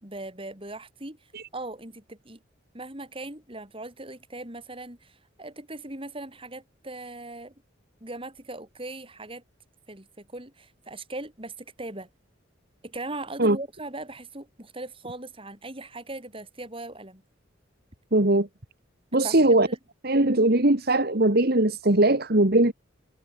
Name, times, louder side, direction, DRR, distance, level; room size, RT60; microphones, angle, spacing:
voice 1, 0.0-1.2 1.5-2.4 2.7-7.5 8.0-9.4 9.9-12.1 12.8-17.2 19.2-19.8, right 2 dB, 30° right, 4.8 m, -39 dB
voice 2, 18.1-18.5 19.1-19.7 20.0-22.7, right 2 dB, 55° right, 2.1 m, -20 dB
head